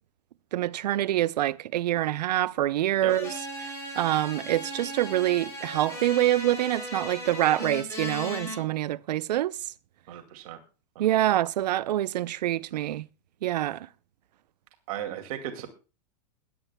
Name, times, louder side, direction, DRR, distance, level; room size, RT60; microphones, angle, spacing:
voice 1, 0.5-3.3 4.0-9.6 11.0-13.0 13.4-13.9, right 13 dB, 80° right, 0.6 m, -26 dB
sound 1, 3.1-8.6, equal, 15° left, 4.9 m, -37 dB
voice 2, 10.1-10.6 11.0-11.4 14.9-15.7, right 11 dB, 60° right, 2.3 m, -36 dB
21.5 x 11.0 x 2.2 m
hypercardioid pair, 130°, 21 cm